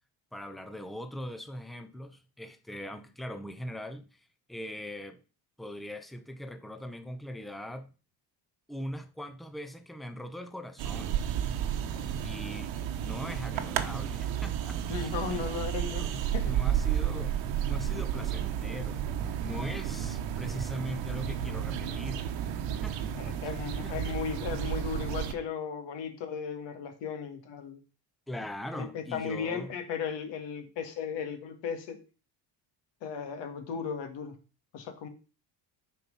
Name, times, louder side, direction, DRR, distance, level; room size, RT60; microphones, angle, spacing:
voice 1, 0.3-4.2 4.5-5.2 5.6-7.9 8.7-11.3 12.2-12.7 13.0-15.5 16.0-16.1 16.4-22.3 22.7-23.6 23.8-24.2 28.3-29.7, equal, ahead, 0.5 m, -41 dB
sound 1, 10.8-25.3, right 9 dB, 90° right, 1.1 m, -32 dB
voice 2, 14.9-16.5 23.1-27.8 28.7-32.0 33.0-34.4 34.7-35.1, left 6 dB, 75° left, 1.9 m, -36 dB
10.5 x 4.5 x 5.4 m
cardioid pair, 160°, 43 cm